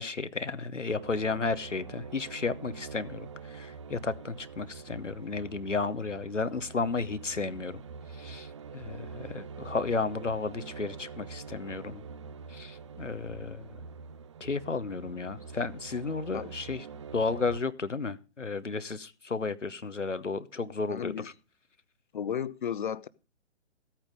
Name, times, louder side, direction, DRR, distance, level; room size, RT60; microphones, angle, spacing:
voice 1, 0.0-7.8 8.1-12.0 12.5-13.7 14.4-16.8 17.1-21.3, left 4 dB, 85° left, 1.1 m, -33 dB
sound 1, 0.8-17.6, right 5 dB, 25° right, 0.5 m, -45 dB
voice 2, 20.9-21.3 22.1-23.1, left 8 dB, 45° left, 0.7 m, -33 dB
15.0 x 8.8 x 5.3 m
figure-of-eight pair, 135°, 36 cm